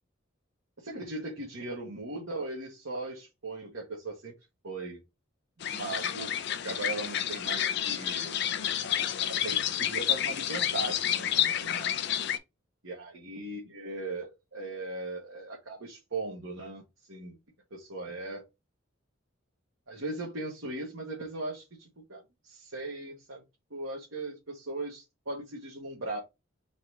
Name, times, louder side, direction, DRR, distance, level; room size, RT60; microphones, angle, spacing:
voice 1, 0.8-4.3 4.6-5.0 5.6-6.3 6.6-8.4 9.2-11.9 12.8-16.8 17.1-17.4 17.7-18.4 19.9-23.4 23.7-26.2, right 2 dB, 90° right, 1.4 m, -38 dB
sound 1, 5.6-12.4, left 10 dB, 55° left, 0.5 m, -30 dB
4.0 x 2.7 x 4.6 m
head